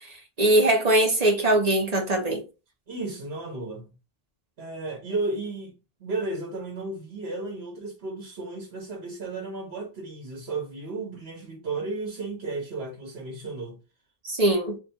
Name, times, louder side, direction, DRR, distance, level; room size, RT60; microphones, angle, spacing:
voice 1, 0.4-2.4 14.2-14.8, right 1 dB, 40° right, 1.2 m, -21 dB
voice 2, 2.9-3.9 4.6-13.8, right 3 dB, 80° right, 1.3 m, -34 dB
3.3 x 2.6 x 4.2 m
omnidirectional pair, 1.0 m